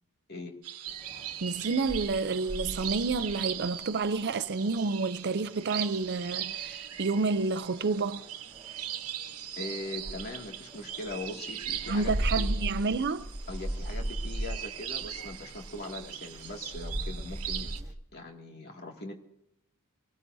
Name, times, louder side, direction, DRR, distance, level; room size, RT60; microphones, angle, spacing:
sound 1, 0.6-17.8, right 11 dB, 75° right, 1.2 m, -40 dB
sound 2, 0.9-17.9, right 1 dB, 15° right, 0.9 m, -39 dB
voice 1, 1.4-8.2 11.9-13.3, right 4 dB, 50° right, 0.6 m, -29 dB
voice 2, 9.6-12.5 13.5-19.1, left 2 dB, 45° left, 2.3 m, -41 dB
24.0 x 18.5 x 2.7 m
head